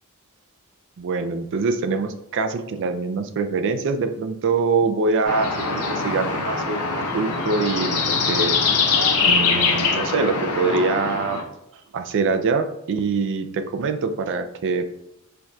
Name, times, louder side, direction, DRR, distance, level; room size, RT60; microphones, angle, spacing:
voice 1, 1.0-8.0 8.3-8.7 9.3-11.4 11.9-14.9, right 4 dB, 55° right, 8 dB, 0.3 m, -24 dB
sound 1, 5.2-11.4, left 4 dB, 85° left, 0.7 m, -23 dB
4.4 x 2.3 x 2.6 m, 0.82 s
head